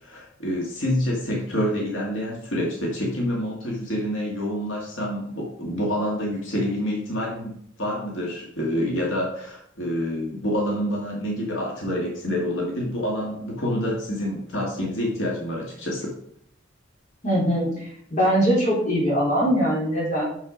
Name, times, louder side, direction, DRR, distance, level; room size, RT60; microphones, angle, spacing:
voice 1, 0.0-7.5 7.8-16.1, equal, 85° left, -2 dB, 1.9 m, -27 dB
voice 2, 17.2-20.2, equal, 40° left, -6 dB, 3.7 m, -22 dB
6.5 x 5.7 x 5.0 m, 0.67 s
head